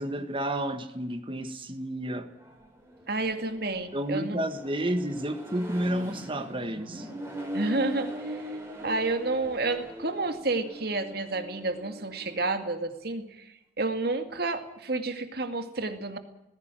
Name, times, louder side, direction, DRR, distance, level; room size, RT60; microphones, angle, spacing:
voice 1, 0.0-2.3 3.9-7.1, right 1 dB, 30° right, 1.6 m, -31 dB
Accelerating revving vroom, 2.3-12.7, right 1 dB, 15° right, 4.7 m, -41 dB
voice 2, 3.1-4.4 7.5-8.4 8.8-13.4 13.8-16.2, right 2 dB, 60° right, 2.3 m, -30 dB
19.0 x 16.5 x 9.2 m
head